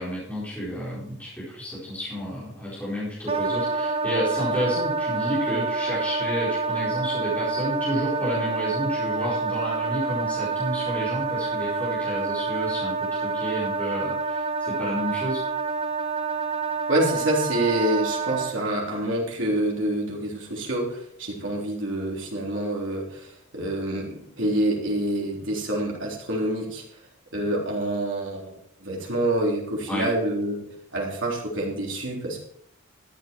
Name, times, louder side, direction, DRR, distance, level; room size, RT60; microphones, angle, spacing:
voice 1, 0.0-15.4 29.9-30.1, equal, 5° left, -9 dB, 4.6 m, -31 dB
Wind instrument woodwind instrument, 3.3-18.5, right 4 dB, 25° right, 0.5 m, -27 dB
voice 2, 16.9-26.8 27.3-28.5 28.8-32.4, right 1 dB, 60° right, -3 dB, 3.7 m, -27 dB
13.5 x 8.6 x 4.6 m, 0.70 s
head